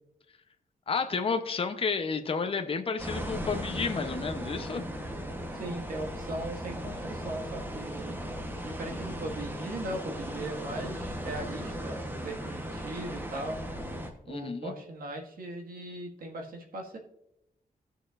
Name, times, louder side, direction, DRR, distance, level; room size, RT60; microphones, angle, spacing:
voice 1, 0.9-4.8 14.3-14.7, left 5 dB, 40° left, 7 dB, 0.7 m, -31 dB
sound 1, 3.0-14.1, equal, 15° right, 1.0 m, -37 dB
voice 2, 5.5-8.2 8.6-13.6 14.3-17.0, right 1 dB, 80° right, 1 dB, 1.8 m, -39 dB
16.5 x 6.6 x 2.5 m, 0.85 s
wide cardioid pair, 155°, 15 cm